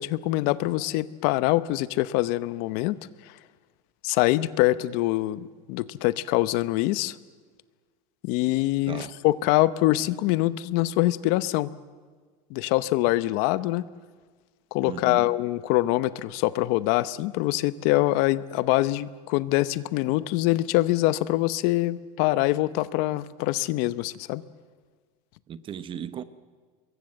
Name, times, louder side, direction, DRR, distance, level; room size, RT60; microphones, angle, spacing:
voice 1, 0.0-3.0 3.2-3.3 4.0-7.2 8.2-11.7 12.5-13.8 14.7-24.4, left 17 dB, 55° left, 0.8 m, -24 dB
voice 2, 8.9-9.2 14.8-15.3 25.5-26.2, right 9 dB, 30° right, 1.0 m, -36 dB
25.5 x 22.5 x 7.6 m
supercardioid pair, 145°, 18 cm